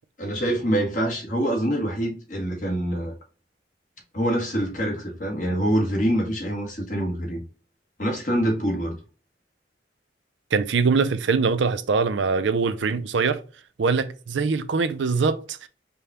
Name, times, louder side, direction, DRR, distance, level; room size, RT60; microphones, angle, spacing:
voice 1, 0.2-3.1 4.1-7.4 8.0-8.9, right 1 dB, 45° left, 1.4 m, -25 dB
voice 2, 10.5-13.4 13.8-15.7, right 4 dB, 80° right, 0.5 m, -23 dB
5.1 x 2.3 x 4.2 m
head